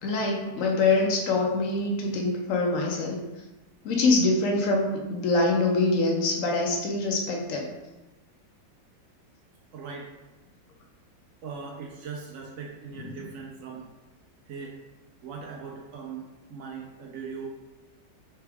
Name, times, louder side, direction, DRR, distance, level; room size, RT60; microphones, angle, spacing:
voice 1, 0.0-3.2 3.8-7.7 13.0-13.1, left 3 dB, 70° left, 0 dB, 0.7 m, -24 dB
voice 2, 9.7-10.1 11.4-13.9 14.5-14.8 15.2-17.5, right 5 dB, 80° right, -1 dB, 0.7 m, -39 dB
3.4 x 3.3 x 3.4 m, 1.1 s
omnidirectional pair, 2.0 m